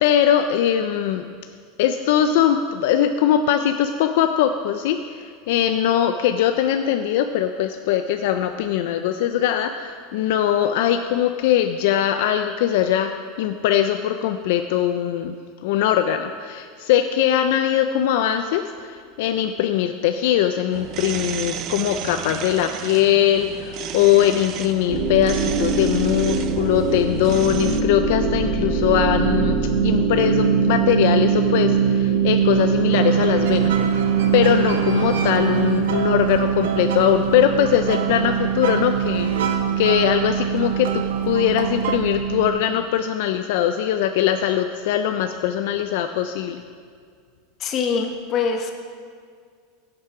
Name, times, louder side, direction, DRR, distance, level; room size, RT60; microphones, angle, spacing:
voice 1, 0.0-1.2 1.8-15.4 15.6-29.6 29.8-34.0 34.3-39.3 39.8-46.6, left 10 dB, 60° left, 8 dB, 0.4 m, -21 dB
sound 1, 20.7-27.8, right 10 dB, 35° right, 0.4 m, -33 dB
sound 2, 24.9-42.5, right 6 dB, 70° right, 2.0 m, -22 dB
sound 3, 32.9-42.0, right 7 dB, 90° right, 0.9 m, -30 dB
voice 2, 47.6-48.7, left 5 dB, 30° left, 4 dB, 0.9 m, -23 dB
11.0 x 7.4 x 4.8 m, 2.1 s
supercardioid pair, 165°, 0 cm